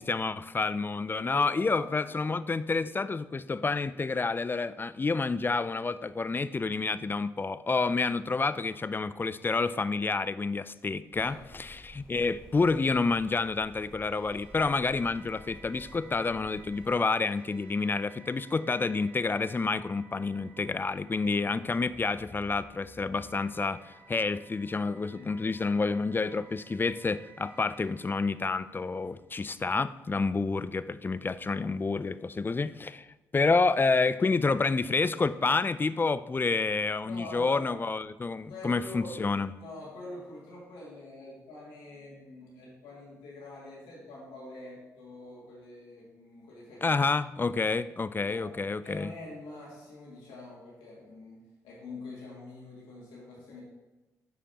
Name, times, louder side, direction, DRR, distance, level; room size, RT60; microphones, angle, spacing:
voice 1, 0.1-33.1 33.3-39.5 46.8-49.1, left 4 dB, 25° left, 15 dB, 0.4 m, -29 dB
voice 2, 1.3-1.8 2.1-2.2 11.2-11.4 25.1-25.3 37.0-37.7 38.5-39.1 39.6-47.0 48.3-48.5 48.8-53.6, left 2 dB, 80° left, -5 dB, 2.4 m, -45 dB
sound 1, 11.1-16.9, left 1 dB, 10° left, 0.9 m, -52 dB
sound 2, 14.1-29.2, right 2 dB, 25° right, 1.5 m, -55 dB
9.0 x 5.0 x 2.9 m, 1.1 s
hypercardioid pair, 40°, 8 cm